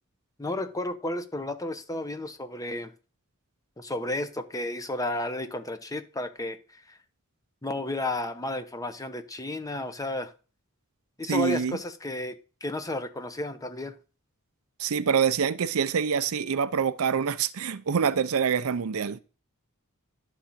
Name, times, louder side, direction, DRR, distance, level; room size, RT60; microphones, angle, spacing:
voice 1, 0.4-2.9 3.8-7.0 7.6-10.3 11.2-12.4 12.6-13.9, left 1 dB, 15° left, 0.9 m, -32 dB
voice 2, 11.3-11.8 14.8-19.2, right 6 dB, 70° right, 0.5 m, -26 dB
11.0 x 3.9 x 7.2 m
head